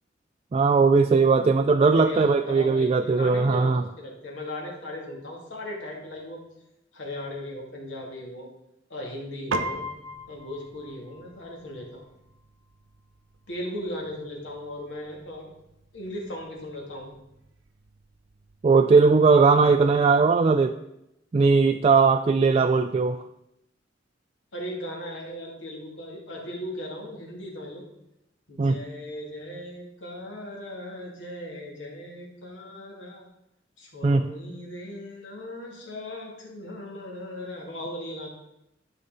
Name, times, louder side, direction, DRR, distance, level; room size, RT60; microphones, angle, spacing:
voice 1, 0.5-3.8 18.6-20.7 21.3-23.2 28.6-28.8 34.0-34.3, right 4 dB, 30° right, 7 dB, 0.3 m, -19 dB
voice 2, 1.9-6.4 6.9-8.5 8.9-9.8 10.3-12.0 13.5-15.5 15.9-17.2 19.8-19.9 24.5-27.8 28.5-33.2 33.8-38.3, left 1 dB, 75° left, -1 dB, 2.3 m, -37 dB
Piano, 9.5-19.1, right 1 dB, 85° right, 0.7 m, -40 dB
12.0 x 5.5 x 4.0 m, 0.84 s
head